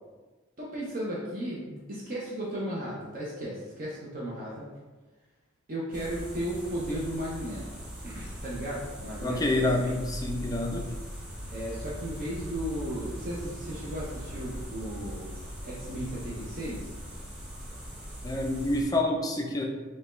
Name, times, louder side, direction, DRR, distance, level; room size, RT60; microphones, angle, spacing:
voice 1, 0.6-4.7 5.7-7.6 8.0-9.5 9.8-10.0 11.5-15.3 15.6-16.9, equal, 40° right, -5 dB, 0.6 m, -35 dB
Meadow insects crow caws, 5.9-18.8, equal, 5° right, 0.9 m, -40 dB
voice 2, 9.2-10.8 18.2-19.6, left 2 dB, 20° left, 1 dB, 0.4 m, -27 dB
5.4 x 2.2 x 3.1 m, 1.3 s
head